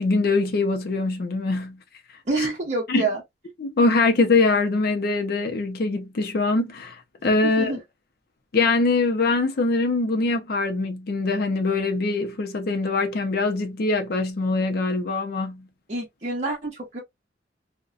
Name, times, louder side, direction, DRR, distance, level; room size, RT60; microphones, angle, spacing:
voice 1, 0.0-1.8 2.9-3.1 3.6-7.7 8.5-15.7, left 3 dB, 55° left, 0.5 m, -23 dB
voice 2, 2.3-3.2 7.6-7.8 15.9-17.0, right 3 dB, 40° right, 0.7 m, -27 dB
2.6 x 2.1 x 2.4 m
head